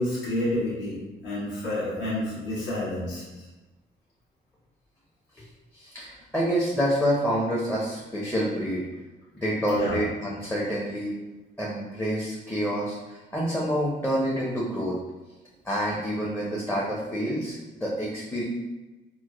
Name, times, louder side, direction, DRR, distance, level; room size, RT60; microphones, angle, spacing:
voice 1, 0.0-3.2 9.7-10.0, left 1 dB, 70° left, -11 dB, 1.5 m, -29 dB
voice 2, 5.7-8.8 9.3-11.1 11.6-15.0 15.6-18.4, equal, 10° left, -5 dB, 0.7 m, -27 dB
4.5 x 2.1 x 2.4 m, 1.1 s
cardioid pair, 90°, 20 cm